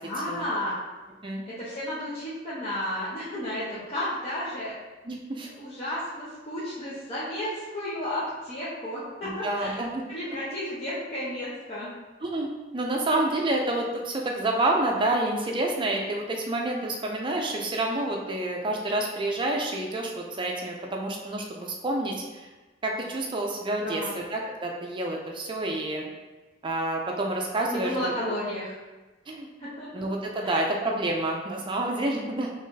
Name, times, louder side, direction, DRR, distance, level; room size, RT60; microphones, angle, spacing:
voice 1, 0.0-0.7 1.5-4.7 5.4-9.7 10.1-11.9 23.8-24.2 27.7-28.7 29.6-30.0 30.4-30.6, left 1 dB, 35° left, -11 dB, 1.0 m, -32 dB
voice 2, 5.0-5.5 9.2-10.0 12.2-22.5 22.8-26.0 26.6-28.0 29.3-29.5 29.9-32.5, right 2 dB, 30° right, 0 dB, 0.4 m, -28 dB
5.5 x 3.2 x 2.7 m, 1.2 s
head